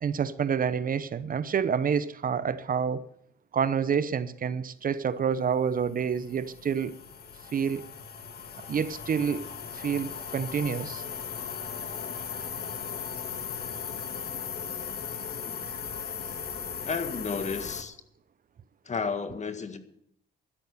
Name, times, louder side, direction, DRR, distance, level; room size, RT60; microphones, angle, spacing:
voice 1, 0.0-3.1 3.5-7.0 7.5-7.9 8.7-9.5 9.7-11.0, right 7 dB, 45° right, 0.8 m, -28 dB
sound 1, 5.6-17.8, left 7 dB, 50° left, 1.8 m, -37 dB
voice 2, 16.8-18.0 18.8-19.8, left 5 dB, 35° left, 1.7 m, -32 dB
12.5 x 11.5 x 6.9 m
cardioid pair, 90°, 20 cm